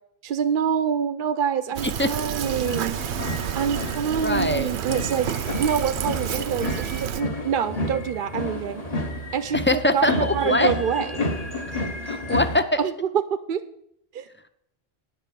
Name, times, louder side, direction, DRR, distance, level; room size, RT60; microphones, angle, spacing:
voice 1, 0.2-3.0 3.5-5.3 5.6-8.8 9.3-11.2 12.8-12.9 13.3-13.6 14.1-14.3, right 7 dB, 60° right, 10 dB, 0.7 m, -26 dB
Fill (with liquid), 1.8-7.2, right 10 dB, 90° right, 0.9 m, -30 dB
sound 1, 2.1-12.6, left 1 dB, 35° left, 1.4 m, -31 dB
voice 2, 4.2-4.7 6.4-6.5 9.5-10.7 12.0-12.8, left 1 dB, 20° left, 10 dB, 0.3 m, -23 dB
10.0 x 5.5 x 8.3 m, 0.73 s
omnidirectional pair, 1.1 m